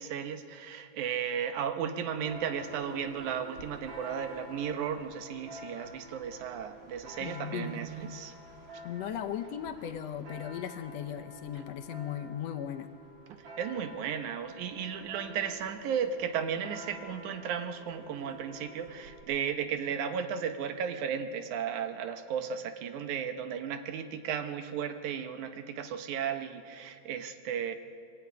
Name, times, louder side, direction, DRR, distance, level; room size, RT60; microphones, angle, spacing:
voice 1, 0.0-8.3 13.6-27.7, right 8 dB, 90° right, 8 dB, 2.5 m, -35 dB
Church bell, 2.2-19.2, equal, 45° right, 2.7 m, -49 dB
voice 2, 7.2-7.8 8.8-12.9, left 9 dB, 70° left, 6 dB, 1.8 m, -37 dB
23.5 x 12.0 x 9.3 m, 2.5 s
omnidirectional pair, 3.3 m